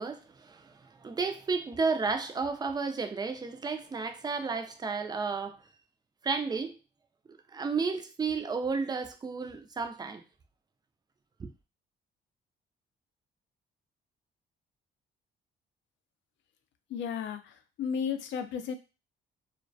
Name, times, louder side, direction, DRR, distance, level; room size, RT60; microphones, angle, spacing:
voice 1, 0.0-5.6 6.2-6.8 7.5-10.2 11.4-11.5, right 4 dB, 20° right, 0.3 m, -32 dB
voice 2, 16.9-18.7, left 7 dB, 70° left, 0.4 m, -34 dB
2.3 x 2.1 x 2.5 m
cardioid pair, 90°, 20 cm